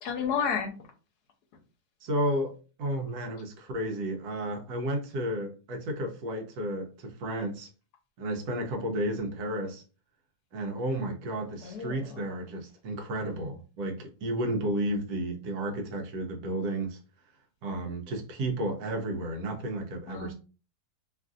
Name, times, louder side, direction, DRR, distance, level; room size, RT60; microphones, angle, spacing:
voice 1, 0.0-0.7 11.6-12.2 20.1-20.3, left 6 dB, 80° left, 1.2 m, -31 dB
voice 2, 2.0-7.7 8.2-9.8 10.5-17.0 17.6-20.3, right 1 dB, 75° right, 1.2 m, -32 dB
3.1 x 2.5 x 2.4 m
omnidirectional pair, 1.7 m